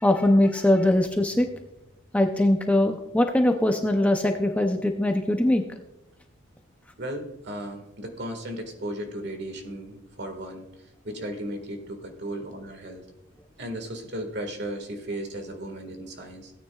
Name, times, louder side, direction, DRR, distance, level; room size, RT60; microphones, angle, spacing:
voice 1, 0.0-1.5 2.1-5.6, left 1 dB, 5° left, 5 dB, 0.5 m, -21 dB
voice 2, 7.0-13.0 13.6-16.5, right 1 dB, 55° right, 5 dB, 1.7 m, -35 dB
17.0 x 9.3 x 2.3 m, 0.93 s
head